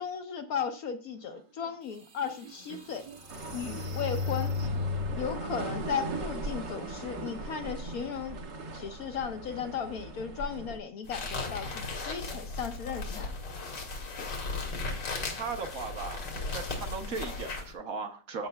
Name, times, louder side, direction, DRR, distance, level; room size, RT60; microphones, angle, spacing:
voice 1, 0.0-3.1 3.5-4.5 5.2-8.4 8.7-13.3 14.2-14.3 17.0-17.2, left 7 dB, 65° left, 7 dB, 1.0 m, -36 dB
sound 1, 1.6-1.7 2.3-5.4, left 4 dB, 40° right, 0.8 m, -34 dB
sound 2, 3.3-10.8, right 2 dB, 75° right, 2.0 m, -39 dB
sound 3, 11.1-17.7, left 3 dB, 85° left, 2.4 m, -36 dB
voice 2, 15.4-16.2 16.5-18.5, right 4 dB, 60° right, 5 dB, 1.1 m, -37 dB
14.0 x 6.8 x 2.2 m, 0.39 s
omnidirectional pair, 1.9 m